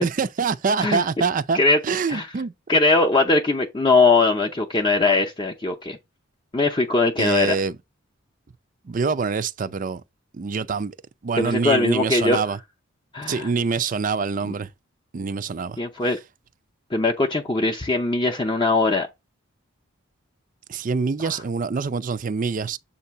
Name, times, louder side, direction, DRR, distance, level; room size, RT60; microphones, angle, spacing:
voice 1, 0.0-1.6 1.8-2.5 7.2-7.8 8.9-10.0 10.3-11.0 11.2-12.6 13.3-14.7 15.1-15.8 20.7-22.8, right 5 dB, 40° right, 0.4 m, -25 dB
voice 2, 2.7-6.0 6.5-7.6 11.4-12.4 13.1-13.5 14.4-14.5 15.8-16.2 16.9-19.1 21.2-21.4, left 3 dB, 25° left, 0.6 m, -20 dB
7.3 x 2.7 x 5.7 m
head